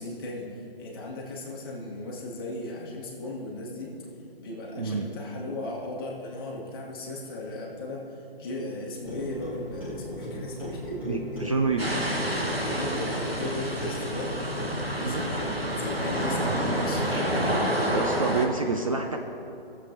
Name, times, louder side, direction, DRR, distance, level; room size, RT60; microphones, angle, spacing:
voice 1, 0.0-3.9 4.4-11.2 12.2-14.3 14.9-17.7, left 2 dB, 25° left, -3 dB, 1.5 m, -37 dB
voice 2, 4.8-5.1 11.1-11.9 15.0-15.3 17.6-19.2, right 4 dB, 35° right, 3 dB, 0.4 m, -28 dB
Clock, 9.1-18.1, left 1 dB, 5° right, 1.0 m, -37 dB
sound 1, 11.8-18.5, right 1 dB, 85° right, 1.5 m, -28 dB
17.5 x 7.2 x 2.9 m, 2.8 s
figure-of-eight pair, 140°, 29 cm